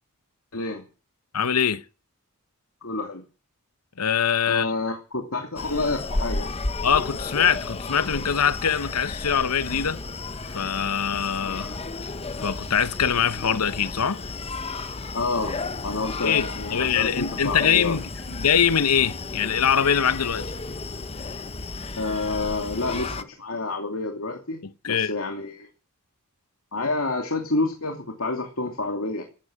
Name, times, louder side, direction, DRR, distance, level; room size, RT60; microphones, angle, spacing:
voice 1, 0.5-0.8 2.8-3.2 4.5-6.5 15.1-15.6 15.8-18.0 22.0-25.7 26.7-29.2, left 2 dB, 70° left, 2.8 m, -28 dB
voice 2, 1.3-1.8 4.0-4.7 6.8-10.0 10.5-11.8 12.4-14.2 16.2-20.5 24.8-25.1, left 7 dB, 90° left, 0.9 m, -23 dB
Screaming, 5.6-23.2, left 3 dB, 25° left, 0.9 m, -33 dB
15.0 x 14.0 x 6.4 m
head